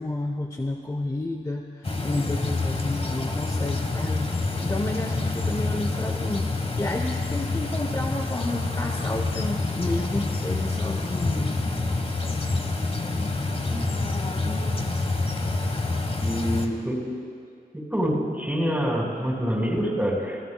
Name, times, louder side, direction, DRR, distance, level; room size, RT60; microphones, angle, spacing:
voice 1, 0.0-4.3 4.6-6.5 6.8-11.6 11.9-12.1, left 2 dB, 20° left, 4 dB, 0.8 m, -31 dB
sound 1, 1.8-16.7, left 3 dB, 35° left, 1.4 m, -27 dB
voice 2, 16.2-17.2 17.7-20.4, equal, 10° right, -2 dB, 4.7 m, -26 dB
25.5 x 16.5 x 2.3 m, 2.2 s
cardioid pair, 55°, 17 cm